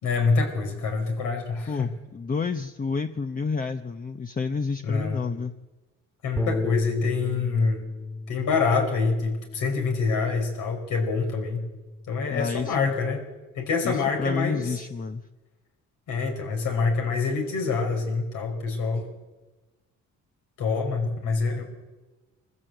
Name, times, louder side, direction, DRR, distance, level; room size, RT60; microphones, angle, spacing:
voice 1, 0.0-1.9 4.8-5.2 6.2-7.9 8.3-11.7 12.1-13.2 13.6-14.7 16.1-19.1 20.6-21.6, left 4 dB, 80° left, 3 dB, 5.2 m, -26 dB
voice 2, 1.7-5.5 12.3-12.9 13.8-15.2, left 4 dB, 30° left, 7 dB, 0.9 m, -29 dB
Bass guitar, 6.4-12.6, left 2 dB, 10° left, 2.0 m, -35 dB
23.5 x 15.0 x 7.9 m, 1.1 s
cardioid pair, 90°, 30 cm